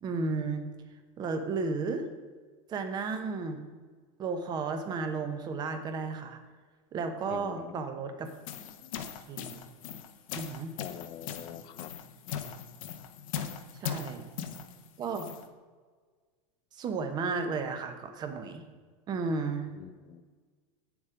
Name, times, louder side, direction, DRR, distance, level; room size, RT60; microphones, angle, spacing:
voice 1, 0.0-0.7 1.2-2.1 2.7-3.6 4.2-6.4 6.9-8.3 9.3-9.7 10.3-10.7 13.7-14.2 15.0-15.3 16.7-18.6 19.1-19.7, right 4 dB, 25° right, 7 dB, 0.9 m, -33 dB
voice 2, 7.3-7.8 10.8-11.9 19.8-20.2, left 10 dB, 25° left, 13 dB, 0.4 m, -44 dB
sound 1, 8.3-15.5, left 8 dB, 70° left, 0.9 m, -40 dB
8.5 x 7.1 x 5.0 m, 1.5 s
supercardioid pair, 155°, 18 cm